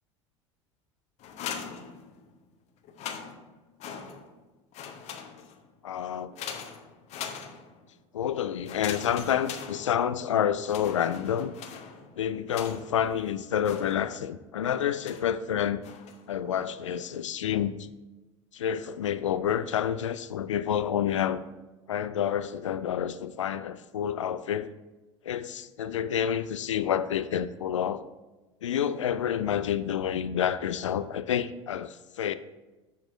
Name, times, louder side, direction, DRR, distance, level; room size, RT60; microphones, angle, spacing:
sound 1, 1.2-2.4 2.8-4.4 4.7-5.7 6.4-7.9 8.6-10.3 10.6-13.1 13.6-14.4 15.0-15.4 15.8-16.3, left 7 dB, 45° left, 0.9 m, -41 dB
voice 1, 5.8-6.3 8.1-11.5 12.2-15.8 16.3-17.9 18.5-21.4 21.9-24.7 25.2-28.0 28.6-32.3, left 9 dB, 75° left, 0.4 m, -29 dB
7.3 x 6.1 x 4.3 m
figure-of-eight pair, 70°, 16 cm